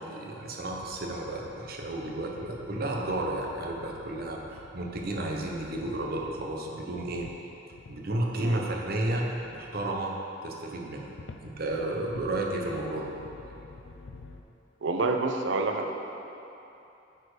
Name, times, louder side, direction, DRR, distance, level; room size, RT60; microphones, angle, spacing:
voice 1, 0.0-7.3 7.9-10.2 10.4-11.1 11.4-13.1, right 1 dB, 55° right, 0 dB, 0.9 m, -32 dB
sound 1, 0.7-8.0 8.2-10.1 10.8-14.4, left 3 dB, 80° left, 0.5 m, -50 dB
voice 2, 14.8-15.9, right 3 dB, 75° right, 4 dB, 0.6 m, -28 dB
9.0 x 4.5 x 4.9 m, 3.0 s
head